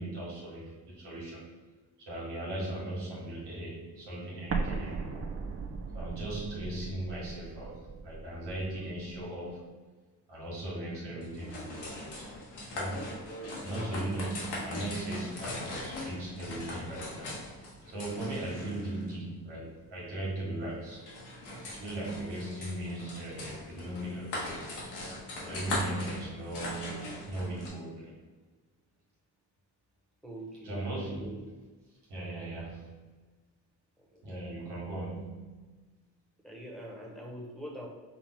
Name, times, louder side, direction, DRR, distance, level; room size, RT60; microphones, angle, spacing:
voice 1, 0.0-1.5 2.0-5.3 5.9-9.7 10.3-12.3 12.7-13.0 13.6-17.4 17.9-21.0 21.7-24.8 25.4-28.2 30.6-31.4 32.1-33.3 34.2-35.9, right 1 dB, 85° right, -6 dB, 1.4 m, -38 dB
Explosion, 4.5-9.3, right 4 dB, 40° right, 0.6 m, -38 dB
sound 1, 11.2-27.7, left 1 dB, 80° left, 1.2 m, -40 dB
voice 2, 30.2-31.4 34.0-34.2 36.4-37.9, right 1 dB, ahead, -3 dB, 1.3 m, -44 dB
4.9 x 2.4 x 3.5 m, 1.3 s
supercardioid pair, 45°, 39 cm